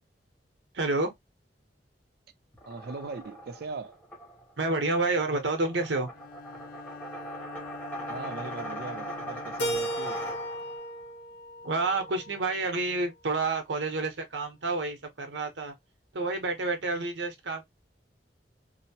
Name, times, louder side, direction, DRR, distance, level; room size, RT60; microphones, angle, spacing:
voice 1, 0.7-1.1 4.6-6.1 11.6-15.7 16.1-17.6, right 3 dB, 80° right, 0.9 m, -29 dB
sound 1, 2.5-10.8, right 1 dB, 10° left, 0.9 m, -40 dB
voice 2, 2.6-4.0 8.1-10.2, right 3 dB, 60° right, 0.4 m, -39 dB
Bowed string instrument, 6.1-10.7, left 6 dB, 55° left, 0.3 m, -46 dB
Keyboard (musical), 9.6-12.5, right 1 dB, 70° left, 0.9 m, -35 dB
2.8 x 2.0 x 2.8 m
head